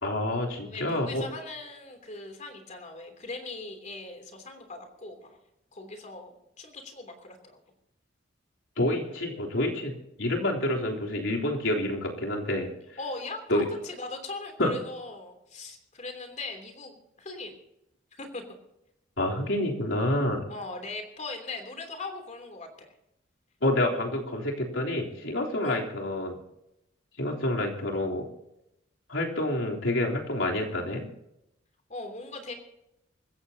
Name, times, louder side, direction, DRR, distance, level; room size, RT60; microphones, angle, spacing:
voice 1, 0.0-1.2 8.8-12.7 13.5-13.7 14.6-14.7 19.2-20.4 23.6-26.4 27.2-28.3 29.1-31.1, left 1 dB, 85° left, -1 dB, 3.6 m, -28 dB
voice 2, 0.6-5.4 5.7-7.6 13.0-17.5 18.1-18.4 20.5-22.9 25.6-25.8 31.9-32.5, left 3 dB, 40° left, 5 dB, 3.2 m, -40 dB
25.5 x 15.0 x 2.9 m, 0.84 s
head